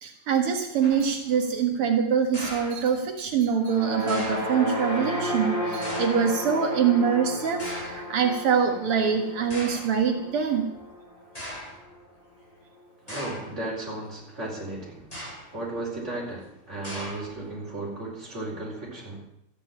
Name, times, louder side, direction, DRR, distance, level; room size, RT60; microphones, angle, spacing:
voice 1, 0.0-10.7, right 7 dB, 85° right, 3 dB, 2.5 m, -24 dB
sound 1, 0.8-1.2 2.3-3.2 4.1-4.6 5.8-6.4 7.6-8.1 8.9-9.0 9.5-10.0 10.8-10.9 11.4-11.8 13.1-13.6 15.0-15.6 16.8-17.5, equal, 15° left, 4.7 m, -38 dB
sound 2, 3.6-11.9, left 1 dB, 50° left, 6.6 m, -33 dB
voice 2, 13.1-15.1 15.5-19.2, right 2 dB, 30° right, -3 dB, 5.1 m, -35 dB
14.0 x 9.6 x 9.0 m, 0.77 s
omnidirectional pair, 2.4 m